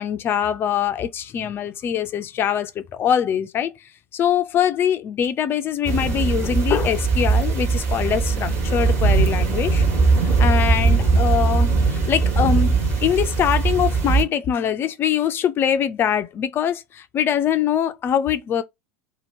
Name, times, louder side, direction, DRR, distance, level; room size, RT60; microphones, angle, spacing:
voice 1, 0.0-3.7 4.1-9.8 10.2-18.6, left 9 dB, 30° left, 0.4 m, -23 dB
sound 1, 5.8-14.2, right 4 dB, 40° right, 1.3 m, -20 dB
2.8 x 2.5 x 4.2 m
figure-of-eight pair, 80°, 7 cm